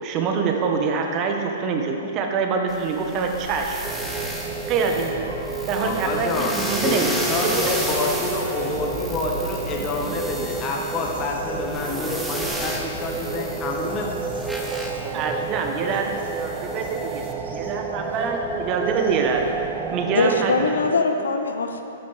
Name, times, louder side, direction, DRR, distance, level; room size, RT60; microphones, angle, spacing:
voice 1, 0.0-3.9 4.7-5.3 5.7-7.1 7.4-7.8 15.1-17.3 17.5-19.6 19.9-21.0, right 5 dB, 35° right, 3 dB, 0.8 m, -25 dB
sound 1, 2.7-17.3, equal, 5° right, 0.9 m, -33 dB
sound 2, 2.9-20.1, right 1 dB, 80° right, 1.7 m, -39 dB
sound 3, 3.8-20.9, right 5 dB, 20° right, 0.4 m, -32 dB
voice 2, 5.8-14.2, left 3 dB, 30° left, 0 dB, 1.3 m, -28 dB
voice 3, 20.1-21.8, left 3 dB, 85° left, 6 dB, 0.6 m, -22 dB
9.6 x 7.2 x 3.3 m, 2.7 s
hypercardioid pair, 120°, 0 cm